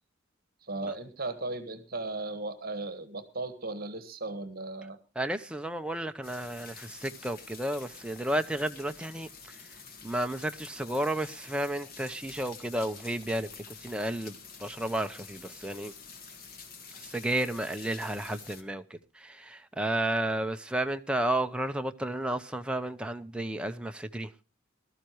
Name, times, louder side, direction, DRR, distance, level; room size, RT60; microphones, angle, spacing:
voice 1, 0.6-5.0, right 2 dB, 50° right, 1.5 m, -36 dB
voice 2, 5.2-9.8 10.0-15.9 17.0-24.3, right 1 dB, 5° right, 0.7 m, -32 dB
sound 1, 6.2-18.6, left 5 dB, 50° left, 1.8 m, -48 dB
20.0 x 13.0 x 3.0 m
head